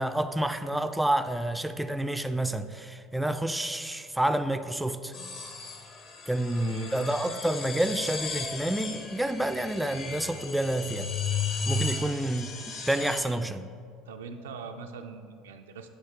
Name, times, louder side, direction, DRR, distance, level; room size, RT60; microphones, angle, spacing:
voice 1, 0.0-5.1 6.3-11.1 11.7-12.5 12.9-13.7, right 1 dB, 5° right, 9 dB, 0.3 m, -29 dB
sound 1, 5.1-13.2, left 4 dB, 50° left, 0.9 m, -35 dB
voice 2, 6.3-7.0 12.0-12.1 12.8-12.9 14.1-15.9, right 5 dB, 85° right, 6 dB, 0.4 m, -43 dB
9.7 x 3.7 x 3.6 m, 2.2 s
hypercardioid pair, 75°, 0 cm